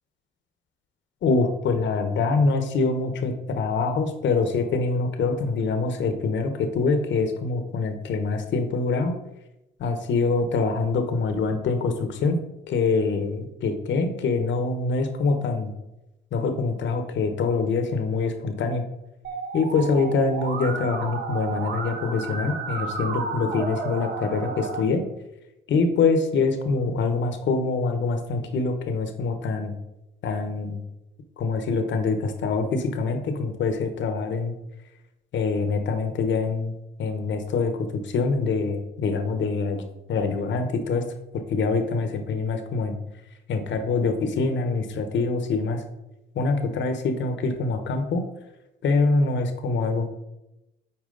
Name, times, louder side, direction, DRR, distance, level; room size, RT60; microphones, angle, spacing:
voice 1, 1.2-9.1 9.8-12.4 12.7-15.7 16.3-18.8 19.5-25.0 25.7-29.7 30.2-30.8 31.4-34.5 35.3-36.7 37.0-39.8 40.1-41.0 41.5-43.0 43.5-45.8 46.3-48.2 48.8-50.1, left 4 dB, 70° left, 7 dB, 1.1 m, -24 dB
Musical instrument, 19.2-24.8, right 4 dB, 50° right, 1.2 m, -32 dB
8.9 x 4.4 x 3.9 m, 0.93 s
cardioid pair, 90°, 20 cm